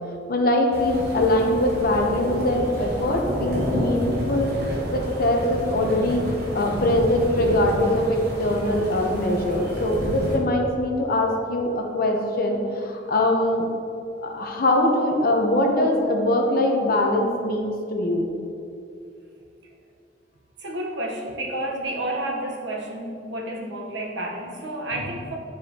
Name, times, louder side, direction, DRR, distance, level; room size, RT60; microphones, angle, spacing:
voice 1, 0.3-4.5 4.9-6.2 6.5-13.7 14.2-18.3, left 1 dB, 55° left, 1 dB, 0.9 m, -22 dB
sound 1, 0.7-10.4, equal, 60° right, 1.4 m, -30 dB
voice 2, 20.6-25.4, right 1 dB, 85° right, 0 dB, 1.1 m, -30 dB
10.0 x 4.7 x 2.9 m, 2.7 s
head